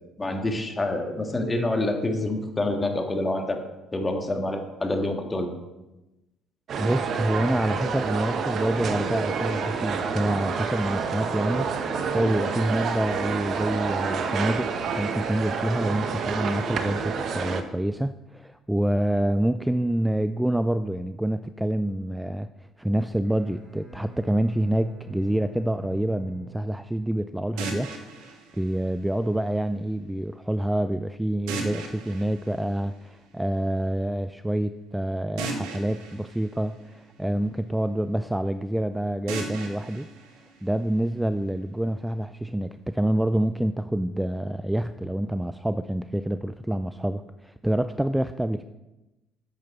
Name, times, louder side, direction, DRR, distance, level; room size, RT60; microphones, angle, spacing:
voice 1, 0.2-3.6 3.9-5.5, left 2 dB, 20° left, 4 dB, 1.7 m, -27 dB
sound 1, 6.7-17.6, right 5 dB, 55° right, 0.9 m, -28 dB
voice 2, 6.8-22.5 22.8-27.9 28.2-28.3 28.6-40.1 40.6-48.6, right 1 dB, 5° right, 12 dB, 0.4 m, -27 dB
Bowed string instrument, 23.2-27.5, right 7 dB, 40° right, 3.5 m, -47 dB
sound 2, 27.6-29.6 31.5-33.4 35.4-37.6 39.3-41.3, right 3 dB, 80° right, 1.5 m, -38 dB
8.9 x 7.7 x 4.2 m, 1.0 s
hypercardioid pair, 65°, 0 cm